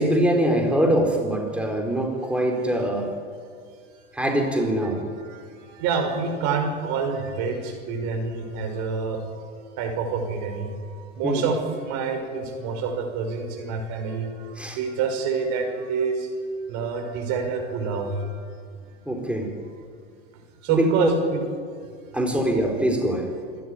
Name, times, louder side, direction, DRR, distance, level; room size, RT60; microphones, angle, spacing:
voice 1, 0.0-3.1 4.1-5.0 11.2-11.4 14.6-14.8 19.1-19.5 20.7-21.1 22.1-23.3, right 1 dB, 5° right, 1 dB, 4.4 m, -23 dB
voice 2, 4.9-9.4 9.8-11.6 11.8-16.3 16.7-18.5 20.6-21.4, right 5 dB, 55° right, 4 dB, 5.7 m, -27 dB
26.5 x 13.0 x 9.9 m, 2.1 s
hypercardioid pair, 90°, 34 cm